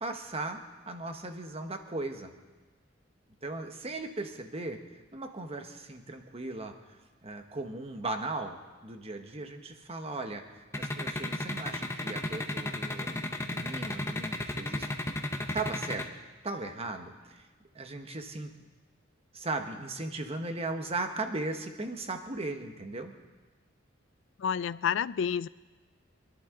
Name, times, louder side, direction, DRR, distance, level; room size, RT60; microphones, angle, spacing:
voice 1, 0.0-0.6 0.9-2.3 3.4-8.6 8.8-14.9 15.5-16.1 16.4-17.5 17.7-18.5 19.3-23.1, right 2 dB, 30° right, 6 dB, 1.1 m, -37 dB
sound 1, 10.7-16.0, left 1 dB, 15° left, 0.8 m, -33 dB
voice 2, 24.4-25.5, left 7 dB, 65° left, 18 dB, 0.3 m, -29 dB
25.0 x 11.0 x 3.8 m, 1.3 s
head